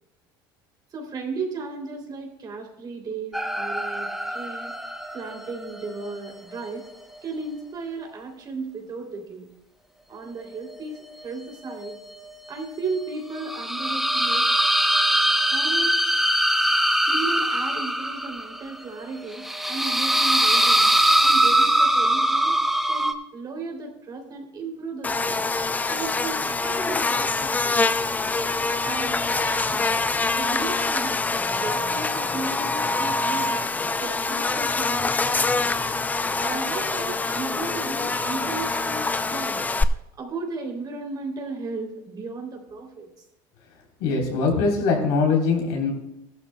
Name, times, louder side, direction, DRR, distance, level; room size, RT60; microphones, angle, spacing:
voice 1, 0.9-4.7 5.1-6.8 7.2-9.5 10.1-11.9 12.5-14.5 15.5-16.0 17.0-22.6 22.9-25.4 25.9-27.8 28.8-29.9 30.3-31.2 31.5-33.6 34.0-35.7 36.4-39.7 40.2-43.1, right 3 dB, 40° right, 2 dB, 3.1 m, -35 dB
sound 1, 3.3-6.8 7.2-7.3 10.7-11.3 11.7-23.1, right 1 dB, ahead, 0.9 m, -22 dB
Buzz, 25.0-39.8, left 3 dB, 15° left, 0.5 m, -25 dB
voice 2, 44.0-45.9, left 4 dB, 75° left, 0 dB, 3.8 m, -22 dB
15.5 x 12.0 x 2.3 m, 0.84 s
supercardioid pair, 105°, 11 cm